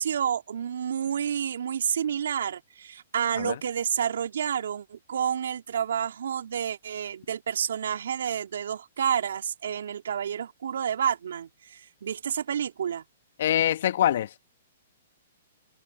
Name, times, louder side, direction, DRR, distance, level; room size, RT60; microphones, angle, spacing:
voice 1, 0.0-13.0, right 8 dB, 75° right, 2.9 m, -29 dB
voice 2, 13.4-14.4, left 11 dB, 60° left, 1.4 m, -24 dB
hypercardioid pair, 130°, 0 cm